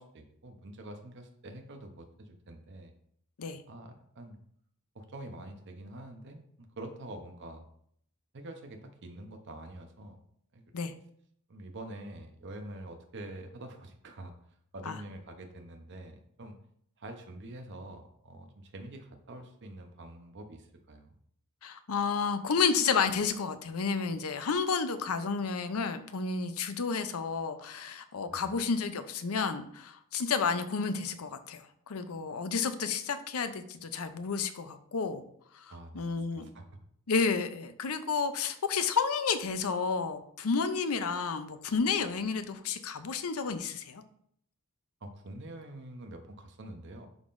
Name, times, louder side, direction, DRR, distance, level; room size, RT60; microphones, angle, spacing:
voice 1, 0.0-2.9 3.7-4.4 4.9-7.7 8.3-10.2 10.5-10.6 11.5-14.3 14.7-16.6 17.0-21.1 28.3-28.5 35.7-36.7 45.0-47.1, right 1 dB, 55° right, 4 dB, 0.8 m, -46 dB
voice 2, 21.6-35.2 35.5-36.5 37.1-44.0, left 5 dB, 75° left, 10 dB, 0.6 m, -31 dB
11.0 x 3.7 x 2.6 m, 0.66 s
head